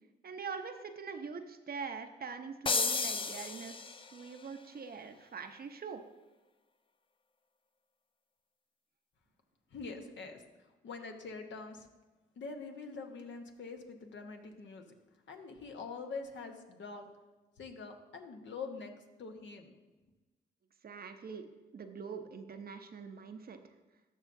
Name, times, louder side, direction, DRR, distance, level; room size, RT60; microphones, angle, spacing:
voice 1, 0.2-6.0 20.8-23.7, right 5 dB, 45° right, 7 dB, 0.8 m, -44 dB
sound 1, 2.7-4.3, left 4 dB, 25° left, 0.5 m, -33 dB
voice 2, 9.7-10.4 10.8-11.9 12.4-14.9 15.3-17.1 17.6-18.9 19.2-19.7, left 4 dB, 60° left, 4 dB, 1.2 m, -44 dB
13.0 x 5.5 x 2.7 m, 1.2 s
hypercardioid pair, 45°, 21 cm